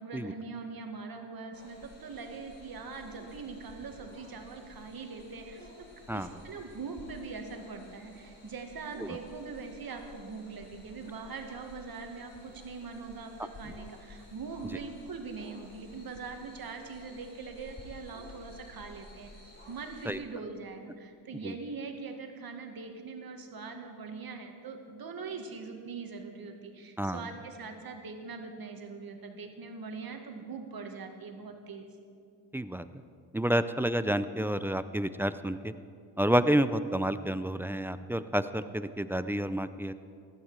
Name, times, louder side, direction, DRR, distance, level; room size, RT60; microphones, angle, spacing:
voice 1, 0.0-19.3 19.7-31.9, right 4 dB, 45° right, 4 dB, 1.9 m, -42 dB
sound 1, 1.5-20.2, left 1 dB, 20° left, 3.9 m, -53 dB
voice 2, 32.5-32.9 33.3-35.7 36.2-39.9, right 1 dB, 5° right, 12 dB, 0.4 m, -29 dB
16.0 x 12.5 x 4.8 m, 2.3 s
supercardioid pair, 70°, 48 cm